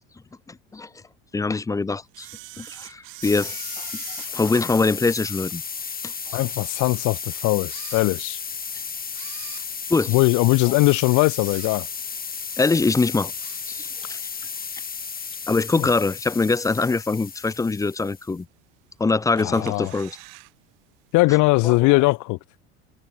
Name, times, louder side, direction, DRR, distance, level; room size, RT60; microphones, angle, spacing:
voice 1, 0.5-0.9 1.3-2.3 2.6-4.0 4.3-5.6 6.0-6.4 9.9-10.1 12.6-13.3 13.7-14.2 15.5-18.5 19.0-20.2 21.6-21.8, left 3 dB, 10° left, 0.5 m, -23 dB
Camera, 2.1-5.7 6.2-6.3 7.0-7.1 7.6-8.6 9.1-12.1 12.4-12.7 13.1-14.1 14.5-14.6 15.5-15.6 16.2-16.6 17.0-17.1 17.3-17.4 17.5-17.6 18.4-18.9 19.4-20.5 20.8-20.9 21.1-21.2, right 33 dB, 75° right, 6.7 m, -43 dB
sound 1, 3.2-18.4, left 6 dB, 25° left, 3.7 m, -34 dB
voice 2, 6.3-8.4 10.1-11.9 15.8-15.9 19.4-19.9 21.1-22.4, left 23 dB, 65° left, 2.0 m, -20 dB
supercardioid pair, 95°, 32 cm